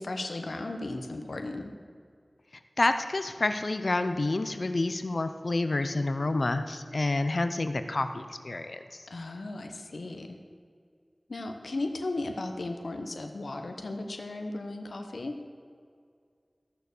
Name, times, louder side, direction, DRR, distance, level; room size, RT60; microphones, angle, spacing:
voice 1, 0.0-1.7 9.1-10.4 11.3-15.4, left 2 dB, 85° left, 5 dB, 0.9 m, -36 dB
voice 2, 2.8-9.0, left 2 dB, 65° left, 9 dB, 0.6 m, -28 dB
14.0 x 6.8 x 6.6 m, 2.2 s
wide cardioid pair, 45°, 0 cm